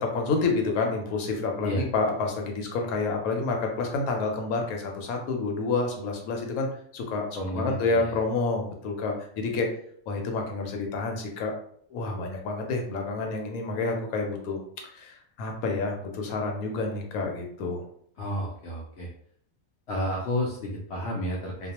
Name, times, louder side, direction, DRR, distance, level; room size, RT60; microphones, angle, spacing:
voice 1, 0.0-7.2 7.5-9.7 10.1-11.5 11.9-14.6 14.9-17.8, left 3 dB, 80° left, 2 dB, 1.1 m, -29 dB
voice 2, 7.3-8.2 18.2-19.1 19.9-21.7, equal, 65° left, -3 dB, 0.7 m, -31 dB
2.3 x 2.3 x 2.8 m, 0.63 s
omnidirectional pair, 1.5 m